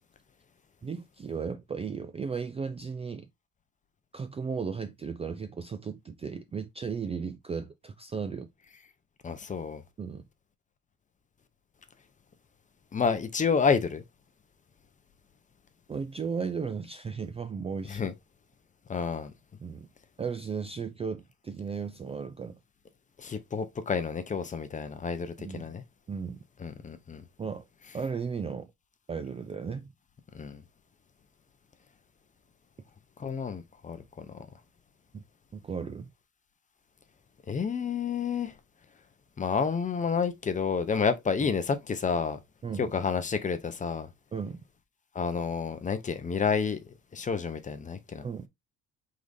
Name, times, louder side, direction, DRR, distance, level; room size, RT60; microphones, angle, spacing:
voice 1, 0.8-3.3 4.1-8.5 10.0-10.2 15.9-18.0 19.6-19.9 20.2-22.6 25.4-25.7 26.1-26.4 27.4-27.6 27.9-28.7 29.1-29.9 35.1-35.2 35.5-36.1 42.6-42.9 44.3-44.6 48.2-48.5, right 5 dB, 20° right, 0.3 m, -35 dB
voice 2, 9.2-9.8 12.9-14.0 17.9-18.1 18.9-19.3 23.2-25.8 26.6-27.2 30.3-30.6 33.2-34.3 37.5-38.5 39.4-42.4 42.8-44.1 45.1-46.8 47.1-48.3, left 5 dB, 25° left, 0.7 m, -29 dB
4.8 x 3.8 x 2.6 m
cardioid pair, 135°, 31 cm